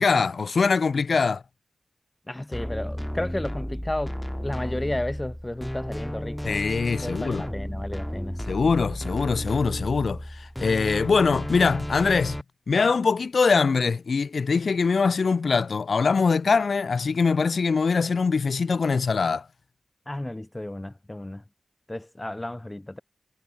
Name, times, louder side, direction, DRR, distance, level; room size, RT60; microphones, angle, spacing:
voice 1, 0.0-1.4 6.4-7.5 8.5-12.4 12.7-19.4, left 5 dB, 70° left, 1.5 m, -23 dB
voice 2, 2.3-4.2 4.4-6.6 7.0-8.4 20.1-21.4 21.9-23.0, left 1 dB, 20° left, 6.8 m, -33 dB
sound 1, 2.5-12.4, equal, 5° left, 2.3 m, -33 dB
cardioid pair, 60°, 0 cm